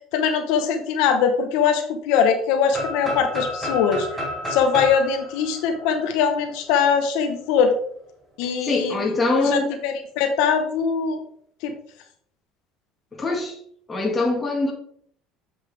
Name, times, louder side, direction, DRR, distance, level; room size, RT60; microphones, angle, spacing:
voice 1, 0.1-4.1 4.5-7.7 8.4-9.1 9.4-11.2 11.6-11.7, left 6 dB, 75° left, 1.0 m, -21 dB
sound 1, 2.7-6.6, equal, 10° right, 2.9 m, -31 dB
voice 2, 8.4-9.7 13.2-13.6 13.9-14.7, left 2 dB, 15° left, 1.9 m, -23 dB
7.5 x 5.8 x 3.4 m
cardioid pair, 135°, 0 cm